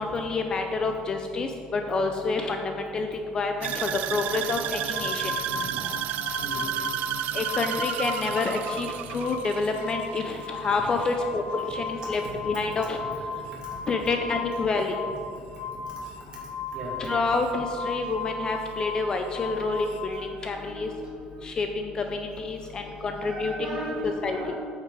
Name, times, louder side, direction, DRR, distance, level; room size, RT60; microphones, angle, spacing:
voice 1, 0.0-5.3 7.3-13.0 13.9-14.9 17.0-20.9 21.4-23.8 24.0-24.4, left 3 dB, 25° left, 5 dB, 0.5 m, -28 dB
sound 1, 3.6-11.8 12.1-12.5 13.0-13.1, right 13 dB, 65° right, 0.3 m, -32 dB
sound 2, 4.9-8.9 9.1-20.1, left 4 dB, 80° left, 0.8 m, -36 dB
voice 2, 5.2-7.1 9.1-9.3 10.5-10.9 11.3-11.4 12.5-14.1 15.8-16.2 16.7-17.1 20.1-21.6 23.2-24.6, right 1 dB, 30° right, -4 dB, 2.5 m, -40 dB
8.7 x 7.3 x 4.8 m, 2.4 s
cardioid pair, 170°, 3 cm